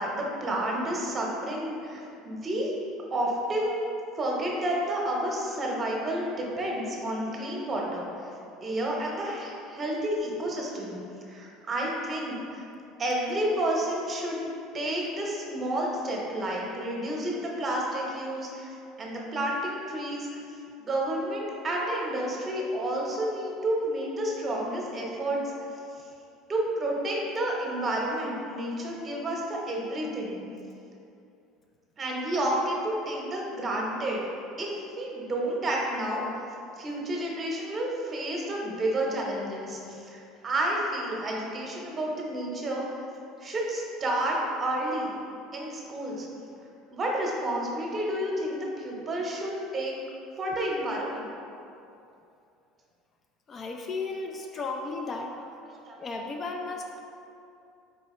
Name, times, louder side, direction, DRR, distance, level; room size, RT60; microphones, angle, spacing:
voice 1, 0.0-2.7 3.1-3.9 4.2-8.1 8.6-11.0 11.3-12.7 13.0-14.4 14.7-18.7 19.0-20.3 20.8-25.4 26.5-30.4 32.0-34.2 34.6-36.2 36.8-42.8 43.4-45.1 45.5-46.3 46.9-49.9 50.4-51.3 55.9-56.0, right 1 dB, 25° right, -2 dB, 0.8 m, -30 dB
voice 2, 53.5-55.3 56.0-57.0, left 3 dB, 30° left, 2 dB, 0.3 m, -34 dB
4.3 x 2.7 x 4.2 m, 2.6 s
supercardioid pair, 120°, 0 cm